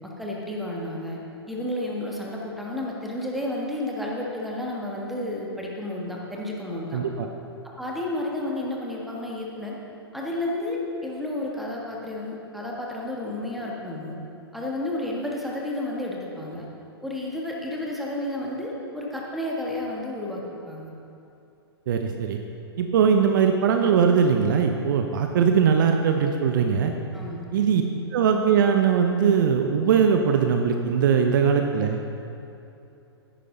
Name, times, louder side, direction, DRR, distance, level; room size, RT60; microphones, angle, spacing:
voice 1, 0.0-1.2 1.5-7.0 7.8-9.8 10.1-14.2 14.5-16.7 17.0-20.9 27.1-27.6, left 1 dB, ahead, -3 dB, 1.5 m, -31 dB
voice 2, 6.9-7.3 21.9-22.4 22.8-26.9 27.5-27.8 28.1-32.0, right 7 dB, 50° right, 4 dB, 0.7 m, -21 dB
10.0 x 10.0 x 3.9 m, 2.8 s
figure-of-eight pair, 110°, 14 cm